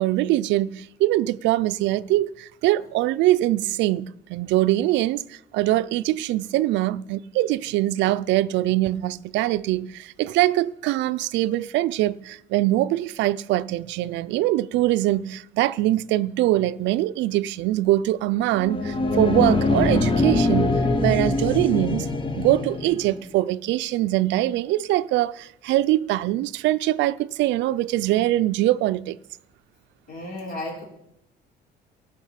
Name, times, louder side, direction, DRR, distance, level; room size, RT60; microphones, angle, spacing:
voice 1, 0.0-22.1 22.3-29.2, right 15 dB, 90° right, 0.5 m, -23 dB
sound 1, 18.5-23.2, left 2 dB, 30° left, 0.8 m, -23 dB
voice 2, 30.1-30.8, left 1 dB, 55° left, 4.4 m, -33 dB
18.0 x 6.0 x 5.8 m
cardioid pair, 150°, 18 cm